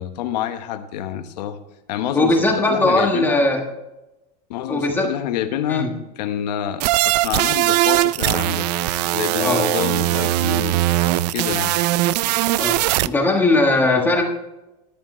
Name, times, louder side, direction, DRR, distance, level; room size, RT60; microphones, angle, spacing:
voice 1, 0.0-1.6 1.9-2.4 2.7-3.4 4.5-5.9 6.2-8.7 9.1-10.8 11.3-11.8, left 10 dB, 80° left, 8 dB, 1.2 m, -27 dB
voice 2, 2.1-3.6 4.7-5.1 5.7-5.9 9.4-9.7 12.6-14.2, left 2 dB, 10° left, 2 dB, 1.3 m, -19 dB
glitch saw melody, 6.8-13.1, right 16 dB, 75° right, 0.4 m, -20 dB
13.5 x 10.5 x 3.2 m, 0.97 s
supercardioid pair, 165°, 21 cm